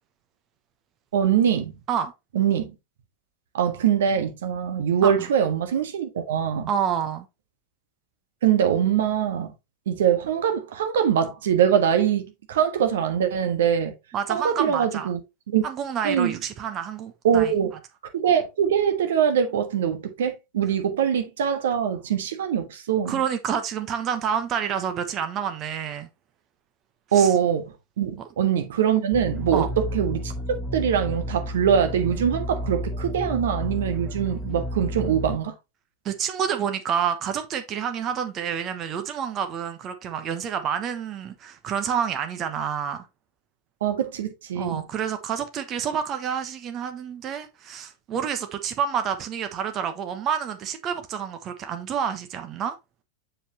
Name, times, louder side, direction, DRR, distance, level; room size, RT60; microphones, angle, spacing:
voice 1, 1.1-1.7 2.3-2.7 3.5-6.7 8.4-9.5 9.9-13.9 14.3-15.2 15.5-15.6 16.0-16.3 17.2-17.7 18.1-23.2 27.1-30.3 30.7-35.5 43.8-44.9, right 8 dB, 60° right, 1.3 m, -23 dB
voice 2, 6.7-7.3 14.1-15.1 15.6-17.5 23.1-26.1 27.2-27.3 28.2-28.3 29.5-29.7 36.0-43.1 44.5-52.8, right 8 dB, 30° right, 1.0 m, -28 dB
sound 1, 29.1-35.4, equal, 5° right, 1.5 m, -31 dB
7.0 x 5.5 x 2.9 m
figure-of-eight pair, 90°, 0 cm